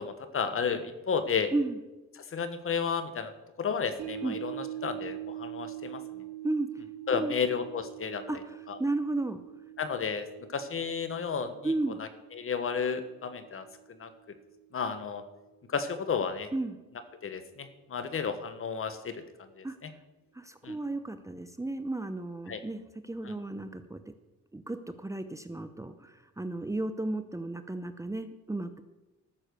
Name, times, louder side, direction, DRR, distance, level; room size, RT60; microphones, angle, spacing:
voice 1, 0.0-1.5 2.3-3.3 3.6-4.5 4.8-6.0 7.1-8.2 8.7-8.8 9.8-11.7 12.0-13.7 14.0-14.1 14.7-15.2 15.7-16.5 17.2-19.2 19.6-19.7 20.6-20.8 22.5-22.6 23.2-23.3, left 6 dB, 45° left, 10 dB, 1.4 m, -32 dB
sound 1, 4.0-14.4 14.7-14.8, right 13 dB, 80° right, 2.8 m, -43 dB
voice 2, 7.1-7.4 8.3-9.4 11.6-12.0 16.5-16.8 19.6-19.8 20.3-24.0 24.5-28.8, right 2 dB, 10° right, 9 dB, 0.7 m, -33 dB
13.0 x 7.1 x 6.8 m, 1.1 s
cardioid pair, 90°, 30 cm